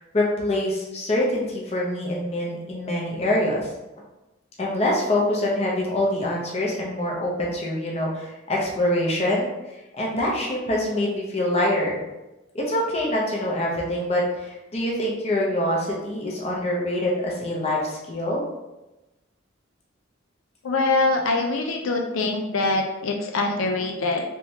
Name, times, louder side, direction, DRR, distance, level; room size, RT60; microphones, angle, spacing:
voice 1, 0.0-3.7 4.6-9.5 9.9-12.0 12.5-18.4, left 1 dB, 30° left, -3 dB, 0.7 m, -25 dB
voice 2, 20.6-24.2, left 3 dB, 85° left, 2 dB, 0.5 m, -24 dB
3.3 x 3.1 x 2.7 m, 1.0 s
head